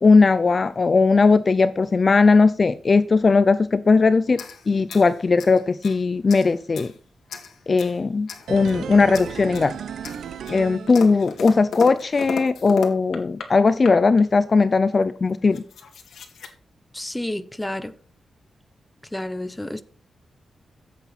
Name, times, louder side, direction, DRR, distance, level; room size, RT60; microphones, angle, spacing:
voice 1, 0.0-4.4 4.7-6.9 7.7-9.7 10.5-15.6, left 4 dB, 35° left, 0.5 m, -18 dB
sound 1, 4.3-6.0 6.3-6.9 7.3-8.0 8.3-8.8 9.1-9.7 10.0-13.5 13.8-14.3 15.0-15.1 15.3-16.5, left 6 dB, 85° left, 2.3 m, -36 dB
sound 2, 8.5-11.6 11.9-12.0, right 8 dB, 85° right, 0.8 m, -35 dB
voice 2, 16.9-17.9 19.1-19.8, left 1 dB, 10° left, 0.9 m, -30 dB
14.0 x 8.2 x 4.2 m
wide cardioid pair, 130°, 0 cm